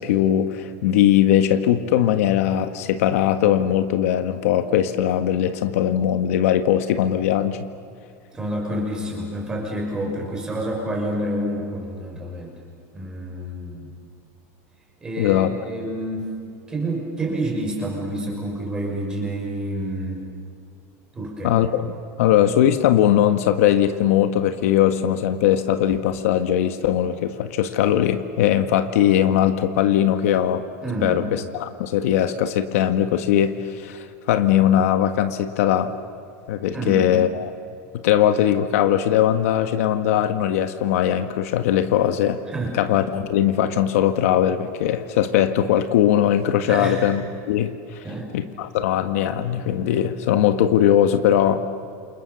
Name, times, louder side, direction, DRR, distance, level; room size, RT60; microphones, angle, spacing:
voice 1, 0.0-7.6 15.2-15.5 21.4-21.9 22.2-30.6 31.0-35.9 36.5-37.5 37.9-42.4 42.7-47.2 47.5-48.0 48.3-51.6, left 10 dB, 65° left, 8 dB, 1.6 m, -20 dB
voice 2, 8.3-12.5 12.9-13.9 15.0-16.3 16.7-20.2 21.1-21.6 30.8-31.2 36.7-37.0 42.5-42.8 46.7-47.0 48.0-48.3, right 1 dB, 10° right, 0 dB, 5.9 m, -28 dB
29.5 x 28.0 x 7.1 m, 2.4 s
supercardioid pair, 175°, 8 cm